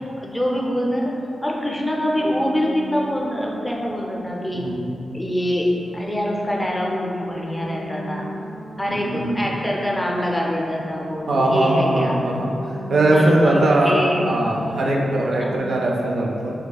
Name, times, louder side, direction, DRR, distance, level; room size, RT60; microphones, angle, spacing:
voice 1, 0.2-1.1 1.4-4.7 5.1-8.3 8.8-12.2 13.1-14.3 15.4-15.5, equal, 10° left, -2 dB, 0.5 m, -24 dB
sound 1, 2.1-5.0 5.7-10.5 10.7-15.6, equal, 80° left, 0.9 m, -38 dB
voice 2, 4.5-4.9 8.9-9.5 11.3-12.5 12.9-16.5, right 1 dB, 75° right, -2 dB, 0.4 m, -20 dB
4.2 x 2.6 x 2.3 m, 2.7 s
cardioid pair, 70°, 0 cm